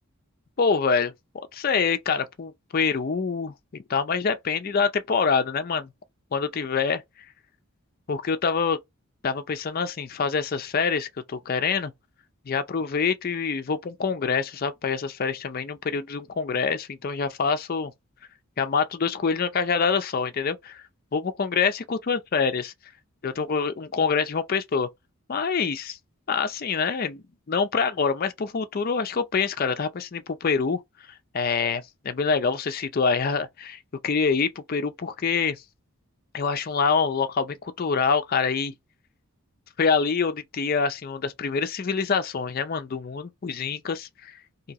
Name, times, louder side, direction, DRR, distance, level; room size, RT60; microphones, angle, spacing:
voice 1, 0.6-1.1 1.5-5.9 6.3-7.0 8.1-8.8 9.2-11.9 12.5-17.9 18.6-20.8 21.1-22.7 23.2-24.9 25.3-26.0 26.3-30.8 31.3-35.6 36.3-38.7 39.8-44.3, left 5 dB, 40° left, 0.4 m, -26 dB
2.9 x 2.7 x 2.4 m
head